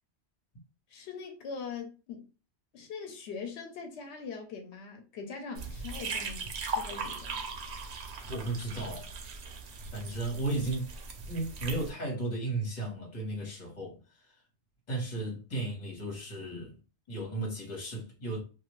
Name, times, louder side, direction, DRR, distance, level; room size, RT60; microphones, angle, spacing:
voice 1, 0.9-2.3 2.7-6.4 6.7-7.4, left 5 dB, 85° left, 0.9 m, -42 dB
sound 1, 5.6-11.9, right 3 dB, 80° right, 0.9 m, -39 dB
voice 2, 8.3-9.1 9.9-10.9 11.3-14.3 14.9-16.7 17.1-18.4, right 2 dB, 40° left, 1.2 m, -35 dB
2.4 x 2.4 x 3.0 m
omnidirectional pair, 1.1 m